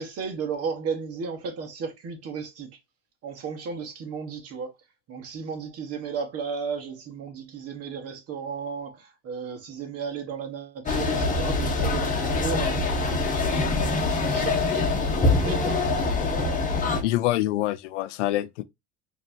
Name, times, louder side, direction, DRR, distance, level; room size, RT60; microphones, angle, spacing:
voice 1, 0.0-2.7 3.2-4.7 5.1-12.9 13.4-16.6, right 5 dB, 45° right, 1.4 m, -34 dB
sound 1, 10.9-17.0, left 3 dB, 20° left, 1.1 m, -24 dB
voice 2, 17.0-18.6, left 15 dB, 85° left, 0.5 m, -25 dB
4.3 x 2.9 x 2.7 m
hypercardioid pair, 95°, 35 cm